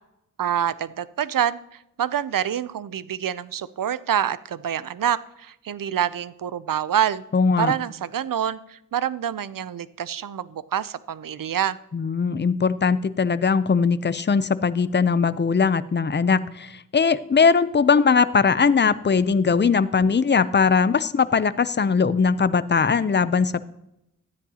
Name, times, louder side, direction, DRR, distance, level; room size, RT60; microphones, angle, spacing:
voice 1, 0.4-1.6 2.0-7.2 7.6-11.8, right 9 dB, 75° right, 17 dB, 0.5 m, -26 dB
voice 2, 7.3-7.7 11.9-23.6, left 5 dB, 35° left, 16 dB, 0.5 m, -20 dB
13.0 x 9.9 x 2.8 m, 0.84 s
wide cardioid pair, 50°, 33 cm